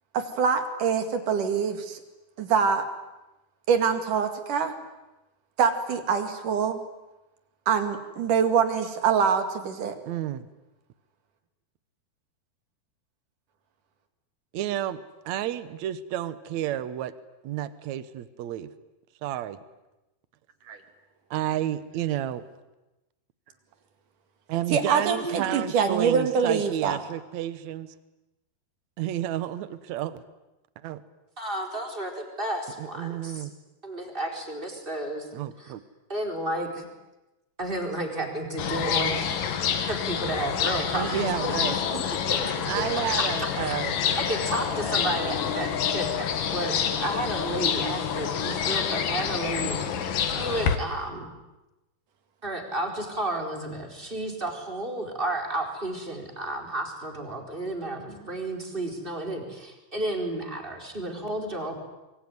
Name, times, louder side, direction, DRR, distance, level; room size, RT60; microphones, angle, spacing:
voice 1, 0.1-2.0 2.4-2.9 3.7-4.7 5.6-6.8 7.7-10.0 20.7-20.8 24.7-27.0, right 6 dB, 55° right, 7 dB, 3.5 m, -24 dB
voice 2, 10.1-10.4 14.5-17.1 17.4-18.7 19.2-19.6 21.3-22.4 24.5-27.9 29.0-30.2 30.8-31.0 32.8-33.5 35.3-35.8 40.9-41.8 42.7-44.0, right 12 dB, 80° right, 14 dB, 1.6 m, -31 dB
voice 3, 31.4-33.5 33.8-35.3 35.6-35.7 36.1-36.7 37.6-42.0 42.3-42.8 43.2-43.7 44.3-46.3 46.5-46.8 47.0-49.8 50.2-51.3 52.4-61.8, right 1 dB, 15° right, 3 dB, 4.0 m, -32 dB
sound 1, 38.6-50.8, left 8 dB, 60° left, 3.2 m, -28 dB
26.0 x 23.5 x 9.6 m, 1.0 s
omnidirectional pair, 4.8 m